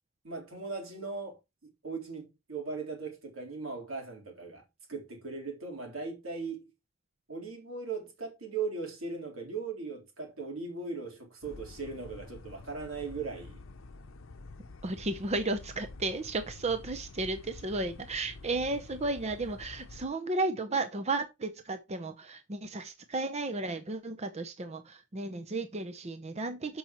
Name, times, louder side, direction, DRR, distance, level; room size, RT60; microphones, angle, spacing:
voice 1, 0.2-4.6 4.9-6.7 7.3-13.6, right 4 dB, 85° right, 3.7 m, -38 dB
sound 1, 11.4-20.1, left 3 dB, 70° left, 0.7 m, -48 dB
voice 2, 14.8-26.8, right 2 dB, 30° right, 0.7 m, -33 dB
13.0 x 5.5 x 3.0 m
head